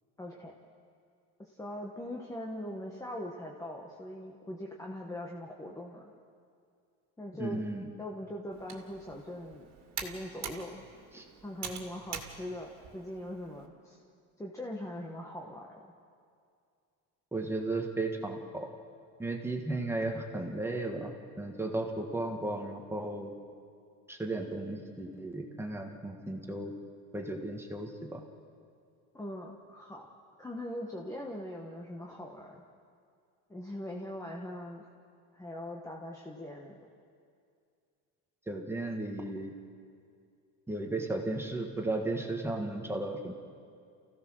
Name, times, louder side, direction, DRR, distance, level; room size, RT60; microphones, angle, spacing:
voice 1, 0.2-0.5 1.4-6.1 7.2-7.7 8.0-9.7 10.0-10.8 11.4-14.0 14.4-15.9 29.1-30.1 30.4-32.6 33.5-34.8 35.3-36.8, left 1 dB, 10° left, -1 dB, 1.2 m, -41 dB
voice 2, 7.4-7.9 11.1-11.2 17.3-18.7 19.2-23.3 24.1-26.7 27.1-28.2 38.5-39.5 40.7-43.3, right 2 dB, 5° right, 2 dB, 1.5 m, -35 dB
Computer keyboard, 8.5-13.7, right 7 dB, 45° right, 2.3 m, -45 dB
29.0 x 16.0 x 6.2 m, 2.3 s
cardioid pair, 155°, 37 cm